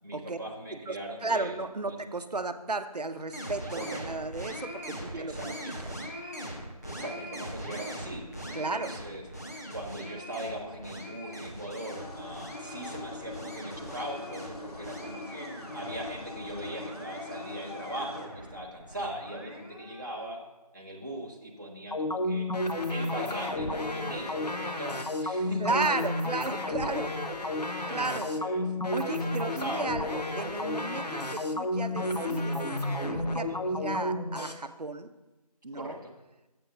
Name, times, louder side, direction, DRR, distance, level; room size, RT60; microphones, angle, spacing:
voice 1, 0.0-1.6 1.9-2.0 3.7-4.2 5.1-5.7 6.8-8.2 8.5-9.2 9.7-20.4 20.7-22.5 22.9-25.8 27.5-28.6 29.1-29.9 33.3-33.6 35.7-36.1, right 1 dB, 30° right, -4 dB, 1.0 m, -40 dB
voice 2, 1.2-5.3 8.5-8.9 25.6-27.2 27.9-28.3 28.9-32.6 33.0-35.1 35.6-36.0, right 3 dB, 80° right, 10 dB, 0.7 m, -34 dB
sound 1, 3.3-20.3, equal, 25° left, 0.8 m, -42 dB
sound 2, 11.9-18.3, left 3 dB, 70° left, 1.5 m, -42 dB
sound 3, 21.9-34.5, left 1 dB, 85° left, 1.0 m, -31 dB
7.7 x 5.7 x 5.7 m, 1.1 s
figure-of-eight pair, 175°, 20 cm